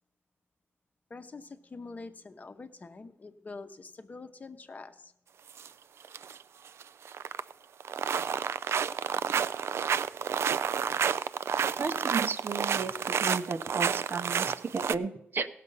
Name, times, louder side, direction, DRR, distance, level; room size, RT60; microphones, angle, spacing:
voice 1, 1.1-5.1, left 3 dB, 40° left, 8 dB, 0.8 m, -45 dB
sound 1, 5.5-5.7 6.0-6.4 6.7-7.5 7.8-14.9, right 7 dB, 80° right, 0.3 m, -30 dB
voice 2, 11.8-15.5, right 4 dB, 55° right, 9 dB, 0.7 m, -34 dB
17.0 x 6.7 x 5.4 m, 0.79 s
wide cardioid pair, 120°, 4 cm